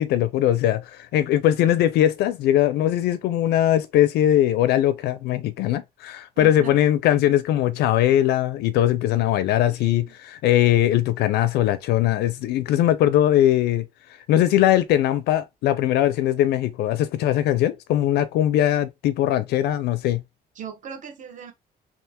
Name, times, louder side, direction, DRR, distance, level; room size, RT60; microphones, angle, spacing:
voice 1, 0.0-13.9 14.3-20.2, left 12 dB, 75° left, 0.4 m, -20 dB
voice 2, 6.4-6.8 9.7-10.1 20.5-21.5, right 8 dB, 50° right, 1.1 m, -38 dB
3.4 x 2.5 x 2.8 m
cardioid pair, 110°, 17 cm